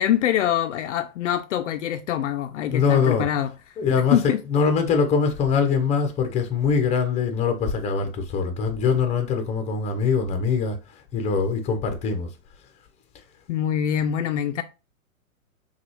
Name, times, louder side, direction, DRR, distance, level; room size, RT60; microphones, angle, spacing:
voice 1, 0.0-3.5 4.1-4.4 13.5-14.6, left 10 dB, 55° left, 0.5 m, -24 dB
voice 2, 2.7-3.3 3.8-4.2 4.5-10.8 11.1-12.3, left 5 dB, 15° left, 0.7 m, -22 dB
5.9 x 2.4 x 3.1 m
hypercardioid pair, 115°, 43 cm